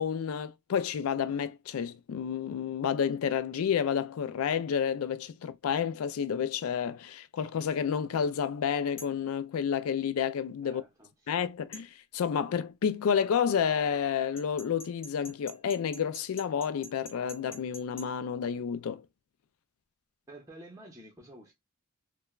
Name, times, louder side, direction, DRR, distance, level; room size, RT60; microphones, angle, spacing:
voice 1, 0.0-10.8 11.3-19.0, left 7 dB, 80° left, 0.3 m, -30 dB
sound 1, 9.0-9.2 11.7-11.9 14.4-18.1, left 1 dB, 25° left, 0.6 m, -46 dB
voice 2, 10.6-11.3 20.3-21.5, right 1 dB, 15° right, 0.6 m, -50 dB
3.1 x 2.1 x 2.3 m
head